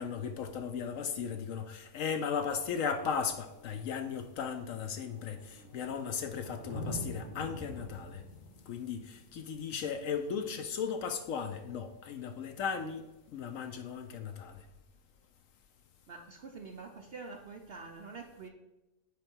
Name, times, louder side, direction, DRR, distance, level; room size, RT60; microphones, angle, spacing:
voice 1, 0.0-8.2 8.7-13.0 13.3-14.6, left 6 dB, 70° left, 0.8 m, -36 dB
Thunder, 3.4-3.5 3.7-11.1 12.7-12.8, equal, 35° right, 1.3 m, -46 dB
voice 2, 16.1-18.5, right 4 dB, 80° right, 0.5 m, -46 dB
8.4 x 4.6 x 4.5 m
omnidirectional pair, 1.8 m